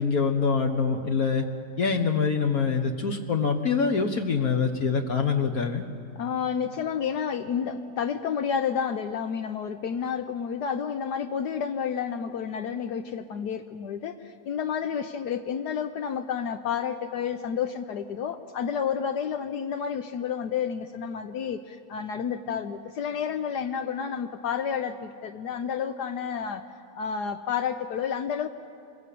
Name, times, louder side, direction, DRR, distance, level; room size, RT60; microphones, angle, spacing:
voice 1, 0.0-1.4 1.8-5.8, left 5 dB, 60° left, 4 dB, 1.6 m, -25 dB
voice 2, 6.2-26.6 26.9-28.5, left 7 dB, 75° left, 7 dB, 1.4 m, -30 dB
26.5 x 22.0 x 8.5 m, 2.5 s
omnidirectional pair, 1.8 m